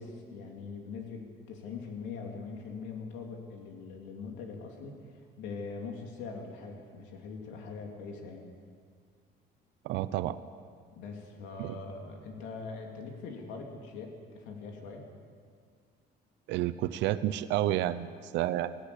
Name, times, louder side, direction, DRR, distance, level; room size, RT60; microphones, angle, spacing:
voice 1, 0.0-8.5 10.9-15.0, left 4 dB, 85° left, 2 dB, 3.3 m, -42 dB
voice 2, 9.8-10.4 11.6-11.8 16.5-18.8, right 13 dB, 75° right, 12 dB, 0.8 m, -30 dB
18.5 x 18.0 x 8.3 m, 2.1 s
cardioid pair, 155°, 19 cm